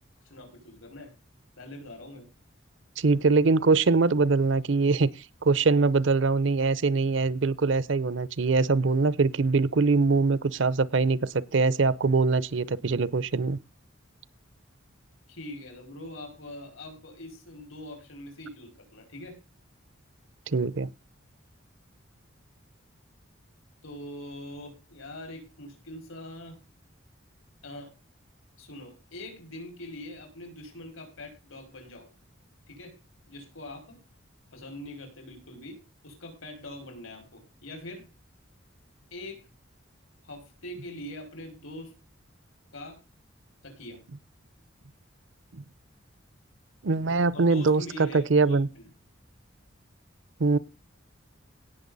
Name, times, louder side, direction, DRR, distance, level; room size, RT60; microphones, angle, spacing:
voice 1, 0.3-1.1 1.6-2.3 15.3-19.4 23.8-26.6 27.6-27.9 28.6-32.1 32.7-32.9 33.3-34.0 34.5-38.1 39.1-39.5 40.2-42.0 42.7-43.0 43.6-44.1 47.3-48.9, left 1 dB, 85° left, 5.3 m, -43 dB
voice 2, 3.0-5.1 5.4-13.6 20.5-20.9 45.5-45.6 46.8-48.7 50.4-50.6, right 4 dB, 65° right, 0.6 m, -23 dB
18.0 x 6.8 x 4.0 m
head